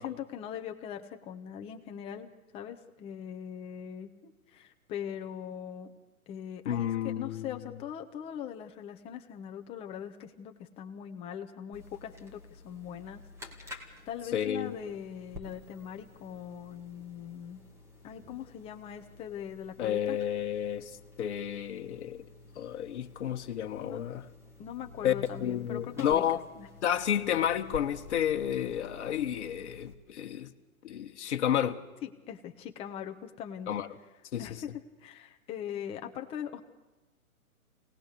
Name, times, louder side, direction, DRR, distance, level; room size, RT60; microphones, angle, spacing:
voice 1, 0.0-5.9 6.3-17.6 18.0-20.2 23.8-24.0 24.6-26.2 26.5-26.7 32.0-33.7 34.4-34.7 35.0-36.6, left 9 dB, 15° left, 1.0 m, -41 dB
voice 2, 6.6-7.5 14.3-14.7 19.8-20.9 21.2-22.2 22.5-24.2 25.0-26.4 26.8-30.5 30.8-31.8 33.7-33.9 34.3-34.5, left 10 dB, 50° left, 1.5 m, -31 dB
sound 1, 11.7-29.9, left 2 dB, 5° right, 2.1 m, -51 dB
27.0 x 19.0 x 6.7 m
hypercardioid pair, 150°, 44 cm